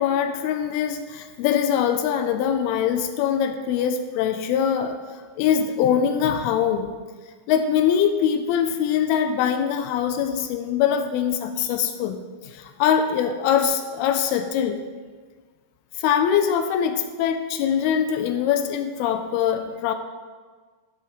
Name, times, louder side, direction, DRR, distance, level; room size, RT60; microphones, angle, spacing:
voice 1, 0.0-5.0 5.4-6.9 7.5-14.8 16.0-19.9, left 8 dB, 85° left, 8 dB, 2.4 m, -23 dB
12.0 x 4.7 x 5.2 m, 1.5 s
omnidirectional pair, 4.6 m